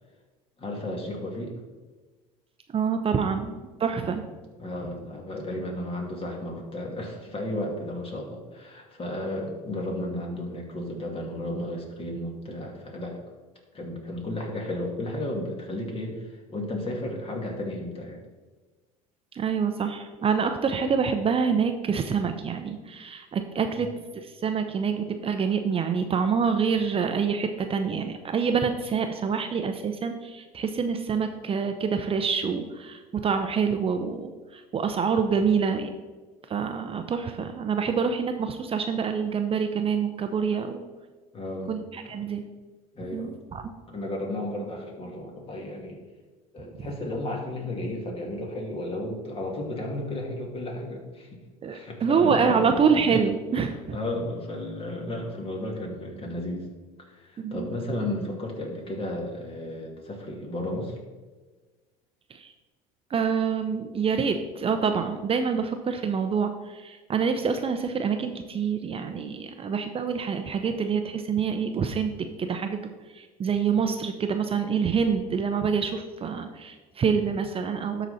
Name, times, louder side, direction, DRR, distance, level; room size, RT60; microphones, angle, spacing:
voice 1, 0.6-1.5 3.9-4.2 4.6-13.2 13.7-18.2 23.8-23.9 41.3-41.8 43.0-43.3 43.9-46.0 46.5-51.4 51.7-52.8 53.9-56.7 57.0-61.0, left 1 dB, 35° left, 0 dB, 2.4 m, -33 dB
voice 2, 2.7-4.3 19.3-23.9 24.2-35.9 36.5-40.8 41.7-42.4 43.0-43.6 46.6-46.7 51.6-54.0 57.4-57.7 62.3-62.5 63.1-72.1 72.4-78.1, right 6 dB, 35° right, 7 dB, 0.7 m, -26 dB
12.0 x 4.1 x 4.2 m, 1.3 s
supercardioid pair, 85°, 17 cm